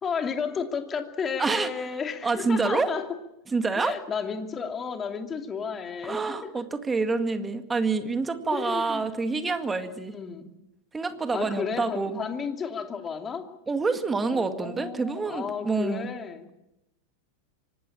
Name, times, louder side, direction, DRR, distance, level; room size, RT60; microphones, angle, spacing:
voice 1, 0.0-3.1 3.8-6.5 8.5-9.1 10.1-10.5 11.3-13.5 14.3-16.5, left 6 dB, 20° left, 6 dB, 2.7 m, -33 dB
voice 2, 1.4-1.7 2.2-2.9 3.5-3.9 6.0-10.2 10.9-12.2 13.7-16.1, right 4 dB, 15° right, 9 dB, 2.0 m, -27 dB
25.0 x 19.5 x 8.8 m, 0.90 s
figure-of-eight pair, 90°, 0 cm